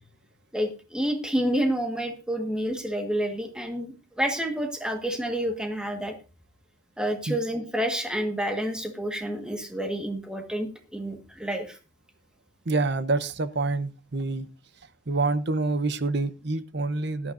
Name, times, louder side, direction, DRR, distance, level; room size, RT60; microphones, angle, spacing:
voice 1, 0.5-6.1 7.0-11.8, equal, 5° right, 3 dB, 1.5 m, -29 dB
voice 2, 12.7-14.5 15.1-17.3, right 3 dB, 55° right, 13 dB, 0.8 m, -27 dB
17.5 x 12.0 x 2.6 m, 0.32 s
head